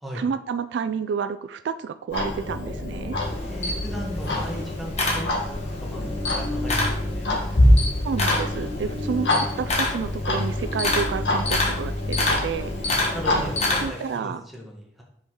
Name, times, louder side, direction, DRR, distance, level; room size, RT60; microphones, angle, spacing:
voice 1, 0.1-3.2 8.0-13.1 13.3-13.5 13.8-14.4, right 6 dB, 75° right, 11 dB, 0.3 m, -30 dB
Clock, 2.1-13.9, left 1 dB, 70° left, 1.4 m, -25 dB
Camera, 3.2-5.8 6.1-7.0 7.4-14.1, left 2 dB, 40° left, 1.3 m, -27 dB
voice 2, 3.4-5.3 5.8-6.1 6.3-7.3 12.8-15.0, equal, ahead, -2 dB, 1.4 m, -36 dB
5.4 x 4.8 x 4.4 m, 0.72 s
head